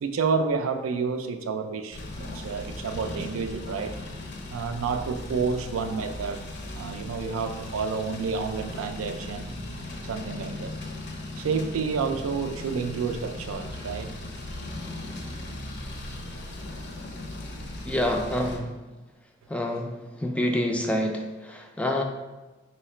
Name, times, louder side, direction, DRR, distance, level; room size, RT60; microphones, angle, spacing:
voice 1, 0.0-3.9 4.5-6.4 6.7-9.5 10.0-10.8 11.4-14.1, right 5 dB, 90° right, 7 dB, 0.4 m, -29 dB
sound 1, 1.9-18.6, left 2 dB, 55° left, 0.6 m, -38 dB
voice 2, 17.8-18.7 19.5-22.0, left 1 dB, 5° left, 1 dB, 0.3 m, -27 dB
3.2 x 2.8 x 4.2 m, 1.2 s
head